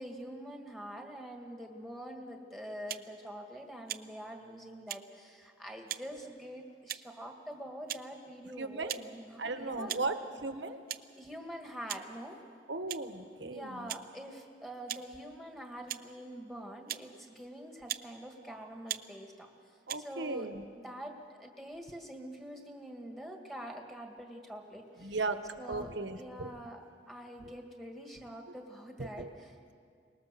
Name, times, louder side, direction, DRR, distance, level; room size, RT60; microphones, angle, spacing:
voice 1, 0.0-10.0 11.2-12.4 13.5-19.5 20.0-20.5 20.8-25.2 25.6-25.9 26.2-29.7, equal, ahead, 2 dB, 1.9 m, -45 dB
sound 1, 2.9-3.1 3.9-4.1 4.9-5.0 5.9-6.1 6.9-7.2 7.9-8.0 8.9-9.1 9.9-10.1 10.9-11.0 11.9-12.1 12.9-13.1 13.9-14.0 14.9-15.0 15.9-16.0 16.9-17.1 17.9-18.1 18.9-19.0 19.9-20.0, right 13 dB, 50° right, 0.5 m, -38 dB
voice 2, 8.6-9.0 9.4-10.8 12.7-13.9 19.9-20.6 25.0-26.5 29.0-29.3, right 3 dB, 75° right, 8 dB, 1.3 m, -37 dB
24.0 x 20.0 x 6.9 m, 2.3 s
head